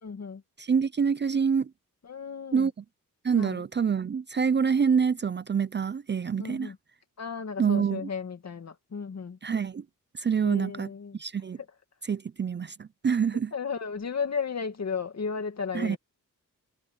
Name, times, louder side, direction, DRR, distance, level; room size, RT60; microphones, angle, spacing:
voice 1, 0.0-0.4 2.0-2.7 3.4-3.6 6.4-6.8 7.2-9.4 10.4-11.2 13.5-16.0, left 5 dB, 50° left, 2.4 m, -34 dB
voice 2, 0.6-1.7 2.5-2.7 3.2-6.7 7.6-8.0 9.4-9.8 10.1-10.9 11.2-11.6 12.1-13.5 15.7-16.0, right 6 dB, 35° right, 0.5 m, -26 dB
cardioid pair, 75°, 33 cm